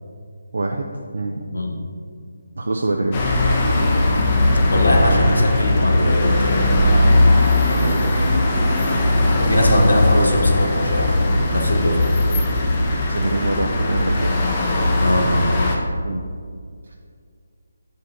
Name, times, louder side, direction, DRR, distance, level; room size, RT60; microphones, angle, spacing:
voice 1, 0.5-0.9 1.1-1.4 2.6-3.3 7.8-7.9 8.9-9.1 13.1-14.3 16.0-16.2, right 2 dB, 70° right, 2 dB, 0.5 m, -24 dB
voice 2, 1.5-1.9 4.7-7.3 7.6-8.3 9.3-11.2 11.5-12.1 15.0-15.5, left 1 dB, 80° left, 1 dB, 1.2 m, -21 dB
sound 1, 3.1-15.8, left 2 dB, 30° left, 0.9 m, -18 dB
6.1 x 5.2 x 4.0 m, 2.1 s
figure-of-eight pair, 150°, 0 cm